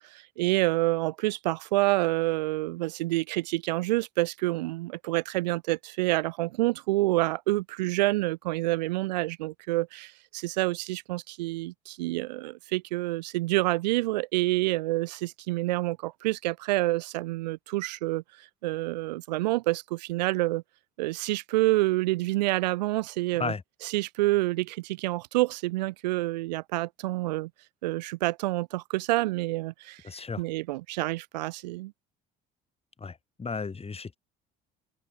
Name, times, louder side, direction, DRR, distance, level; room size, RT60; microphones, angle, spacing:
voice 1, 0.1-18.2 18.6-20.6 21.0-23.5 23.8-27.5 27.8-30.0 30.4-31.9, right 19 dB, 90° right, 4.5 m, -28 dB
voice 2, 30.0-30.4 33.0-34.2, left 4 dB, 30° left, 3.4 m, -34 dB
open air
hypercardioid pair, 65°, 21 cm